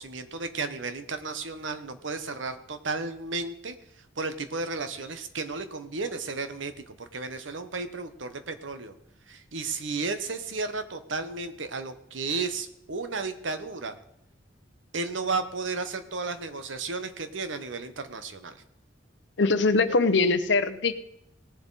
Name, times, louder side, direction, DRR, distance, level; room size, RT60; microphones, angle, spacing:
voice 1, 0.0-3.8 4.2-8.9 9.3-13.9 14.9-18.6, right 4 dB, 85° right, 9 dB, 1.0 m, -33 dB
voice 2, 19.4-20.9, left 3 dB, 65° left, 12 dB, 0.7 m, -22 dB
19.0 x 7.2 x 4.0 m, 0.75 s
head